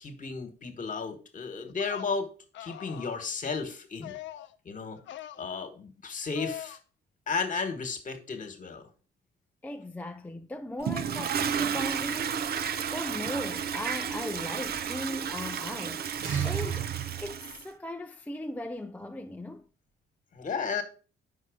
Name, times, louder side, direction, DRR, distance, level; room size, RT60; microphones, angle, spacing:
voice 1, 0.0-2.3 2.6-4.2 4.6-5.0 5.4-6.8 7.3-8.9 20.3-20.8, left 5 dB, 40° left, 1.5 m, -33 dB
sound 1, 1.7-2.1 2.5-3.3 4.0-4.5 5.0-5.4 6.3-6.8, left 12 dB, 70° left, 0.5 m, -42 dB
voice 2, 9.6-12.4 12.9-16.1 16.4-16.9 17.2-19.6, left 1 dB, 10° left, 0.4 m, -38 dB
Toilet flush, 10.8-17.6, right 8 dB, 50° right, 0.6 m, -32 dB
sound 2, 16.2-18.4, right 4 dB, 70° right, 1.6 m, -51 dB
5.6 x 4.7 x 5.0 m
cardioid pair, 90°, 20 cm